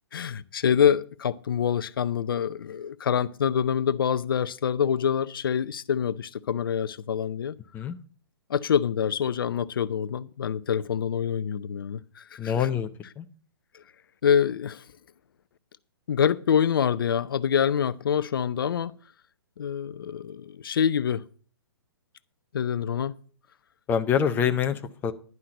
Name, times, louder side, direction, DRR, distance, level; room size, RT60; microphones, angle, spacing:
voice 1, 0.1-7.5 8.5-12.7 13.7-13.8 14.2-14.9 16.1-18.9 19.6-21.2 22.5-23.1, left 8 dB, 60° left, 0.5 m, -26 dB
voice 2, 12.4-12.9 13.2-13.3 23.9-25.1, left 8 dB, 15° left, 0.6 m, -25 dB
10.5 x 5.7 x 7.6 m
figure-of-eight pair, 125°, 13 cm